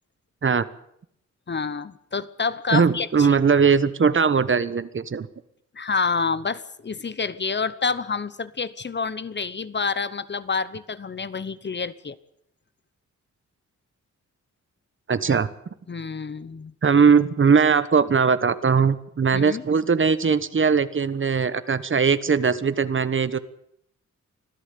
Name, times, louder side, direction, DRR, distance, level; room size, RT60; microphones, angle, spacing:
voice 1, 1.5-3.3 5.7-12.2 15.3-15.4 15.9-16.7 19.3-19.6, left 5 dB, 35° left, 16 dB, 0.9 m, -28 dB
voice 2, 2.7-5.3 15.1-15.5 16.8-23.4, right 5 dB, 40° right, 15 dB, 1.2 m, -20 dB
25.5 x 15.0 x 8.5 m, 0.73 s
wide cardioid pair, 120°, 30 cm